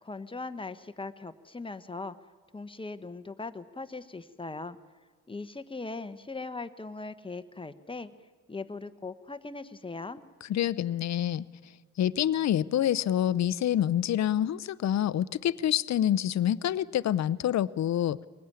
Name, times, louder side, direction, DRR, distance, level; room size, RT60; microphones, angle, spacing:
voice 1, 0.0-2.2 2.5-4.8 5.3-8.1 8.5-10.2, left 3 dB, 15° left, 11 dB, 1.0 m, -39 dB
voice 2, 10.5-11.4 12.0-18.2, left 11 dB, 55° left, 17 dB, 0.7 m, -27 dB
22.0 x 17.5 x 9.7 m, 1.5 s
cardioid pair, 85°, 32 cm